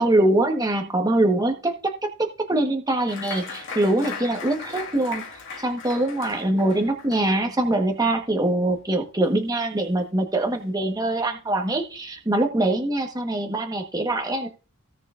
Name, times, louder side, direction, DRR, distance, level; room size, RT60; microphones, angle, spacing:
voice 1, 0.0-1.9 2.2-5.2 5.6-14.5, right 1 dB, 15° right, 4 dB, 1.3 m, -23 dB
Applause, 3.1-10.1 10.4-11.1 11.5-11.6 12.0-12.4, left 5 dB, 60° left, 2.1 m, -39 dB
17.5 x 6.6 x 2.5 m, 0.35 s
head